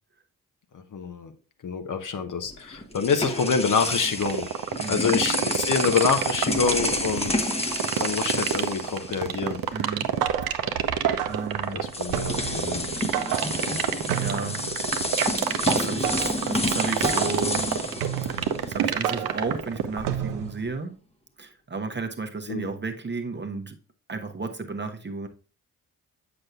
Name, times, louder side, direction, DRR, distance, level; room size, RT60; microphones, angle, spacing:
voice 1, 0.7-1.3 1.6-4.5 4.9-7.5 8.0-9.6 12.0-12.9 22.5-22.7, left 5 dB, 45° left, 0.9 m, -26 dB
sound 1, 2.4-9.7 10.0-10.2 11.3-11.4 11.9-19.0, left 1 dB, 15° left, 1.0 m, -30 dB
sound 2, 4.2-20.1, right 9 dB, 50° right, 0.8 m, -27 dB
voice 2, 4.8-5.1 9.7-10.1 10.5-10.8 11.3-11.9 13.5-13.6 14.2-14.6 15.2-15.4 15.7-17.8 18.3-20.9 21.4-23.8 24.1-25.3, right 4 dB, 25° right, 0.9 m, -33 dB
sound 3, 10.1-20.7, right 9 dB, 85° right, 0.6 m, -33 dB
7.7 x 6.0 x 2.4 m
hypercardioid pair, 40°, 44 cm